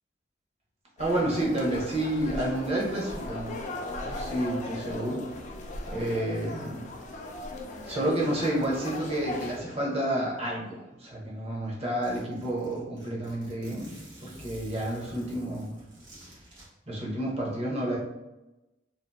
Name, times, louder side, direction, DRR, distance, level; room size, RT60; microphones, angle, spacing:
sound 1, 1.0-9.6, left 2 dB, 40° left, 0.3 m, -38 dB
voice 1, 1.0-3.6 4.0-5.3 5.9-7.0 7.9-15.8 16.9-18.0, right 1 dB, 35° right, -4 dB, 0.6 m, -30 dB
Zipper (clothing), 12.0-16.7, right 1 dB, 75° right, 1.0 m, -50 dB
2.7 x 2.4 x 2.2 m, 0.99 s
head